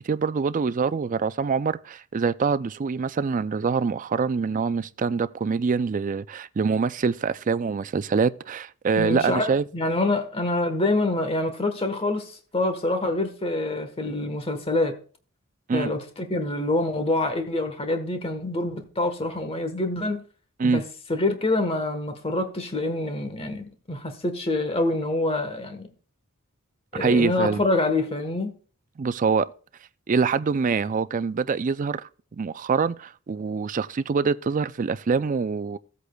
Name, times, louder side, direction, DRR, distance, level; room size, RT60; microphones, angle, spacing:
voice 1, 0.0-9.6 15.7-15.9 20.6-20.8 26.9-27.6 29.0-29.5 30.1-35.8, right 5 dB, 35° right, 0.4 m, -25 dB
voice 2, 8.9-15.0 15.7-20.2 20.6-20.8 21.1-25.9 26.9-28.5, left 2 dB, 25° left, 1.2 m, -26 dB
16.0 x 8.2 x 2.3 m
head